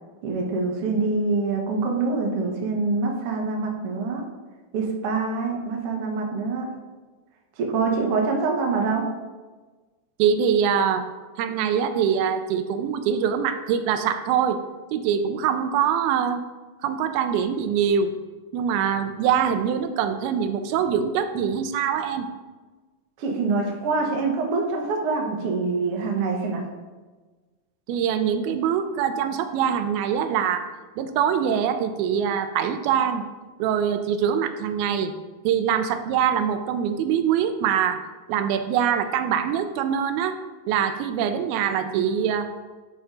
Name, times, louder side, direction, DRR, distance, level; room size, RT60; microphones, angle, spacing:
voice 1, 0.2-4.2 4.7-6.6 7.6-9.0 23.2-26.6 41.8-41.9, right 4 dB, 65° right, 0 dB, 1.5 m, -25 dB
voice 2, 10.2-11.1 11.4-14.6 14.9-16.4 16.8-18.1 18.5-22.3 27.9-30.7 31.0-33.2 33.6-35.1 35.4-38.0 38.3-40.4 40.7-42.5, right 8 dB, 85° right, 9 dB, 2.4 m, -23 dB
11.0 x 5.5 x 3.8 m, 1.3 s
omnidirectional pair, 4.4 m